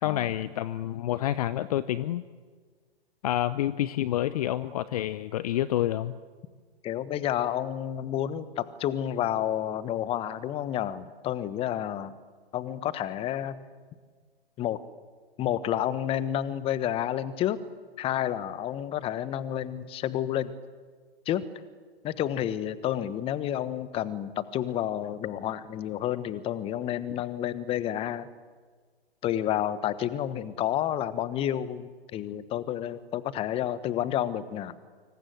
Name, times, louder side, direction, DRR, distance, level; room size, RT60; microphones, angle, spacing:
voice 1, 0.0-2.2 3.2-6.2, left 13 dB, 40° left, 16 dB, 0.8 m, -28 dB
voice 2, 6.8-12.2 12.5-13.6 14.6-14.8 15.4-17.6 18.0-20.5 21.3-21.4 22.0-28.3 29.2-34.8, left 11 dB, 20° left, 16 dB, 1.1 m, -30 dB
26.0 x 24.5 x 7.9 m, 1.6 s
figure-of-eight pair, 120°, 31 cm